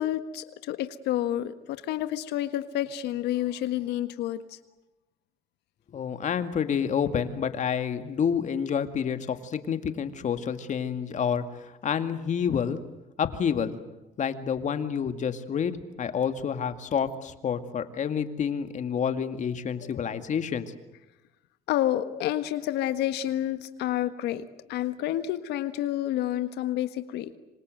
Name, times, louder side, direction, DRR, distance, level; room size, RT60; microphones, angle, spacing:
voice 1, 0.0-4.6 21.7-27.3, left 12 dB, 85° left, 11 dB, 1.6 m, -29 dB
voice 2, 5.9-12.8 13.2-13.8 14.2-15.7 16.0-20.7, left 7 dB, 45° left, 9 dB, 2.2 m, -28 dB
26.0 x 26.0 x 7.9 m, 0.99 s
cardioid pair, 110°, 17 cm